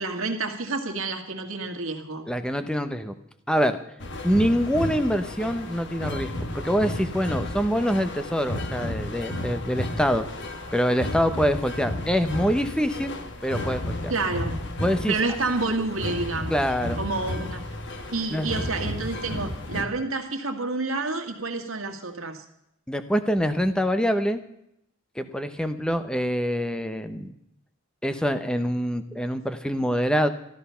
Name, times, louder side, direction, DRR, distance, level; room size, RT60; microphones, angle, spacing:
voice 1, 0.0-2.3 14.1-14.6 15.1-16.6 17.0-17.6 18.1-22.4, right 3 dB, 85° right, 5 dB, 2.0 m, -29 dB
voice 2, 2.3-3.1 3.5-3.8 4.2-10.3 10.7-13.1 13.4-14.1 14.8-15.2 16.5-17.0 18.3-18.5 22.9-24.4 25.2-27.3 28.0-30.3, equal, 5° left, 9 dB, 0.8 m, -25 dB
sound 1, 4.0-19.8, left 1 dB, 55° left, 1.4 m, -33 dB
13.5 x 13.0 x 5.7 m, 0.77 s
head